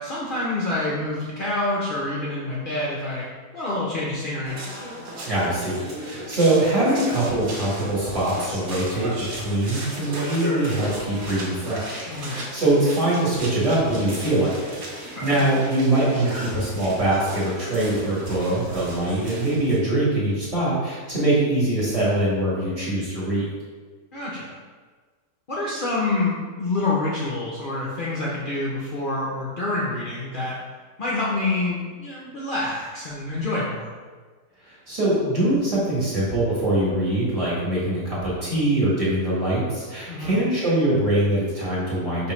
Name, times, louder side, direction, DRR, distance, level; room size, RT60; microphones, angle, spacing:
voice 1, 0.0-3.3 3.5-4.6 12.1-12.4 15.0-15.4 24.1-24.6 25.5-30.6 31.0-33.9 40.1-40.4, left 2 dB, 65° left, -6 dB, 0.5 m, -27 dB
sound 1, 4.5-19.8, right 1 dB, 65° right, 1.3 m, -35 dB
voice 2, 5.2-23.4 34.6-42.3, right 1 dB, 25° right, -9 dB, 1.2 m, -23 dB
5.0 x 2.7 x 3.0 m, 1.5 s
omnidirectional pair, 1.6 m